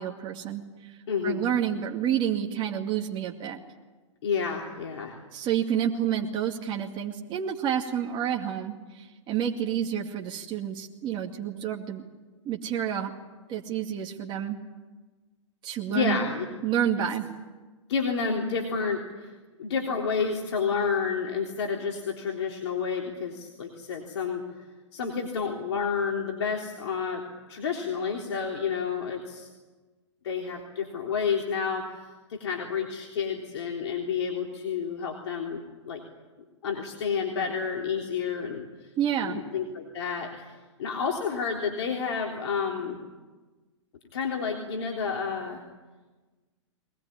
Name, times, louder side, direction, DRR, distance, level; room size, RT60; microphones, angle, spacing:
voice 1, 0.0-1.0 1.2-3.6 5.3-12.0 12.4-13.1 13.5-14.6 15.6-16.3 16.6-17.3 39.0-39.4, right 9 dB, 30° right, 1 dB, 2.3 m, -29 dB
voice 2, 1.1-1.5 4.2-5.2 15.9-16.5 17.9-19.3 19.6-24.4 24.9-27.2 27.5-29.5 30.2-32.0 32.3-36.0 36.6-38.6 39.2-40.5 40.8-43.0 44.1-45.6, left 6 dB, 60° left, 1 dB, 3.5 m, -30 dB
23.0 x 19.5 x 10.0 m, 1.2 s
hypercardioid pair, 115°, 16 cm